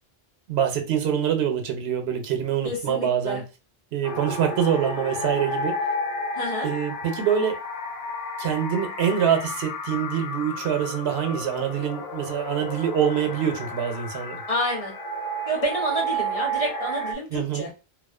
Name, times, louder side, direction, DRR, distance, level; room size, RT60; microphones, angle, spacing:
voice 1, 0.5-3.4 3.9-5.8 6.6-7.6 8.4-14.4 17.3-17.7, right 8 dB, 85° right, 0.9 m, -25 dB
voice 2, 2.6-3.4 6.4-6.7 14.5-14.9 15.5-17.7, equal, 40° left, 0.7 m, -29 dB
sound 1, 4.0-17.2, equal, 90° left, 0.9 m, -32 dB
2.3 x 2.3 x 2.3 m
omnidirectional pair, 1.0 m